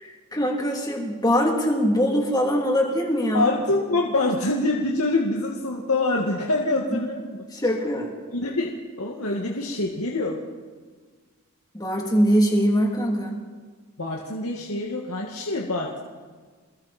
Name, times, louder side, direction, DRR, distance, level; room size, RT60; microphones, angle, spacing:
voice 1, 0.0-3.5 6.9-7.0 7.5-8.1 11.7-13.4, equal, 15° left, 0 dB, 3.1 m, -22 dB
voice 2, 3.3-7.2 8.3-10.4 14.0-16.0, left 2 dB, 80° left, -1 dB, 2.1 m, -25 dB
28.5 x 21.0 x 4.4 m, 1.5 s
head